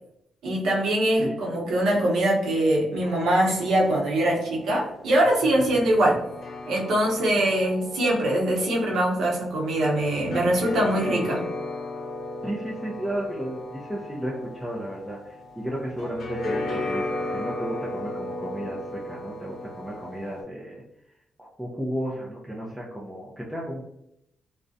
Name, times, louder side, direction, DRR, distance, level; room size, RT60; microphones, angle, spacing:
voice 1, 0.4-6.2 6.7-11.4, right 1 dB, 80° right, -2 dB, 0.7 m, -23 dB
sound 1, 3.0-20.4, left 2 dB, 70° left, 0.6 m, -36 dB
voice 2, 12.4-20.8 21.4-23.8, equal, 5° right, -5 dB, 0.5 m, -33 dB
2.4 x 2.1 x 2.6 m, 0.79 s
cardioid pair, 100°, 0 cm